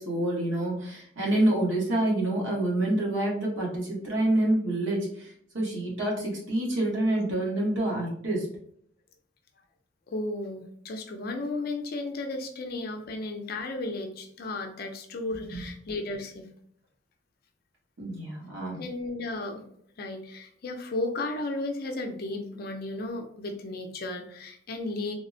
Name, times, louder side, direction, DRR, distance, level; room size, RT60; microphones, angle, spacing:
voice 1, 0.0-8.5 15.5-15.6 18.0-18.8, right 1 dB, 70° right, -3 dB, 1.1 m, -27 dB
voice 2, 10.1-16.5 18.8-19.6 20.0-25.1, left 2 dB, 50° left, 4 dB, 0.4 m, -34 dB
3.5 x 2.0 x 2.6 m, 0.66 s
head